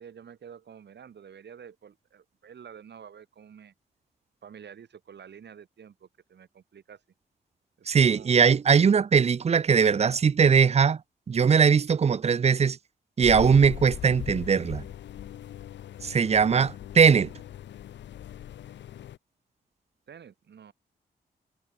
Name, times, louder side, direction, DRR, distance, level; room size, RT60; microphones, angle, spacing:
voice 1, 0.0-3.7 4.4-7.0 7.8-8.4 20.1-20.7, right 7 dB, 70° right, 6.2 m, -48 dB
voice 2, 7.9-11.0 11.3-12.8 13.2-14.8 16.0-17.3, right 6 dB, 35° right, 0.5 m, -20 dB
sound 1, 13.2-19.2, left 11 dB, 75° left, 0.8 m, -40 dB
supercardioid pair, 45°, 19 cm